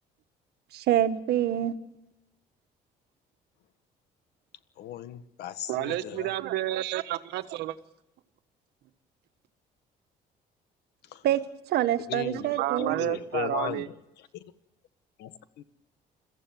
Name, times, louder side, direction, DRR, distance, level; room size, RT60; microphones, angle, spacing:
voice 1, 0.7-1.8 11.2-11.4 11.7-13.0, right 12 dB, 70° right, 11 dB, 1.5 m, -26 dB
voice 2, 4.8-6.3 11.1-11.2 12.1-13.9 15.2-15.6, left 12 dB, 75° left, 13 dB, 1.4 m, -37 dB
voice 3, 5.7-7.8 12.3-13.9, right 14 dB, 90° right, 11 dB, 1.3 m, -30 dB
22.5 x 15.0 x 9.3 m, 0.93 s
cardioid pair, 110°, 17 cm